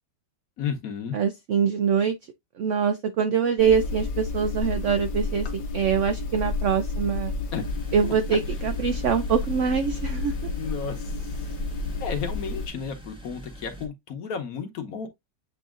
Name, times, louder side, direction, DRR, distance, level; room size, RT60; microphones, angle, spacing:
voice 1, 0.6-1.2 7.5-7.6 10.6-11.0 12.0-15.1, left 6 dB, 60° left, 1.2 m, -32 dB
voice 2, 1.1-2.2 2.6-7.3 7.9-10.3, right 7 dB, 80° right, 0.6 m, -24 dB
sound 1, 3.6-12.7, left 3 dB, 75° left, 1.5 m, -31 dB
sound 2, 7.6-13.9, right 1 dB, 5° right, 0.7 m, -44 dB
7.9 x 2.7 x 2.4 m
omnidirectional pair, 1.9 m